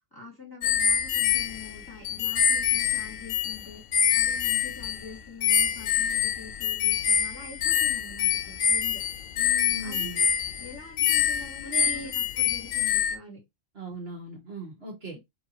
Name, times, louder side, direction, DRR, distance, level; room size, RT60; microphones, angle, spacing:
voice 1, 0.1-3.8 4.1-9.0 9.8-10.2 10.6-13.4, left 4 dB, 20° left, 2.3 m, -45 dB
sound 1, 0.6-5.1 5.4-13.2, left 9 dB, 90° left, 1.0 m, -26 dB
voice 2, 9.4-10.2 11.6-12.1 13.7-15.2, right 2 dB, 55° right, 1.7 m, -39 dB
4.8 x 3.5 x 2.9 m
omnidirectional pair, 1.3 m